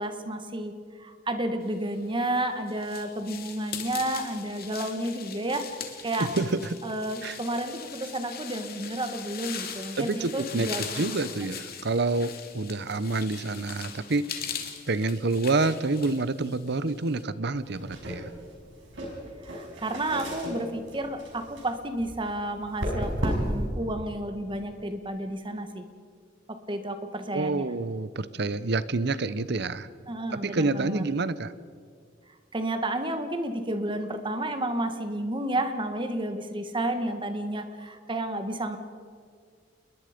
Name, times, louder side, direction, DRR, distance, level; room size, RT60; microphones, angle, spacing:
voice 1, 0.0-5.6 6.0-6.3 6.8-11.1 11.5-11.6 19.4-25.9 26.5-27.7 30.1-31.1 32.5-38.8, right 1 dB, 25° right, 8 dB, 1.6 m, -31 dB
sound 1, 2.1-17.2, left 7 dB, 55° left, 2.4 m, -40 dB
voice 2, 6.2-6.8 7.2-7.4 10.0-14.4 14.9-18.3 27.3-29.9 30.3-31.5, right 3 dB, 60° right, 15 dB, 0.8 m, -28 dB
sound 2, 17.6-23.7, equal, 80° right, 5.9 m, -34 dB
29.0 x 21.0 x 5.2 m, 2.1 s
head